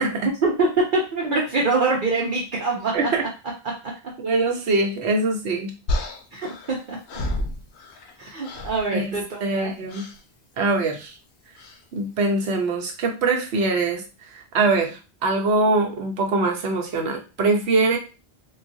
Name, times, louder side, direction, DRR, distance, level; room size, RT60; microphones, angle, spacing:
voice 1, 0.4-3.1 3.6-3.7 6.3-7.0 8.2-9.7, right 3 dB, 55° right, -3 dB, 0.8 m, -24 dB
voice 2, 4.2-5.7 8.9-9.0 9.4-10.0 10.6-11.1 11.9-18.0, right 3 dB, 80° right, 2 dB, 1.1 m, -23 dB
sound 1, 5.9-8.2 8.4-8.9 9.9-10.2 11.6-11.8, left 1 dB, 85° left, 0.9 m, -30 dB
3.8 x 2.4 x 2.6 m, 0.31 s
omnidirectional pair, 1.1 m